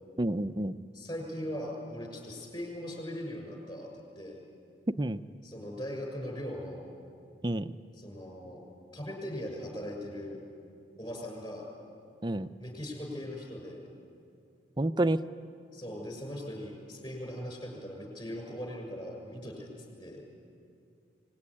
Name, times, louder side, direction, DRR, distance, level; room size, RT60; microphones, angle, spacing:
voice 1, 0.2-0.7 4.9-5.2 7.4-7.7 12.2-12.5 14.8-15.2, right 1 dB, 25° right, 11 dB, 0.6 m, -29 dB
voice 2, 0.9-3.9 4.2-4.4 5.4-6.9 8.0-8.6 8.9-10.4 11.0-11.7 12.6-13.8 15.7-19.7 20.0-20.2, equal, 25° left, 2 dB, 6.3 m, -39 dB
25.5 x 20.0 x 9.9 m, 2.4 s
head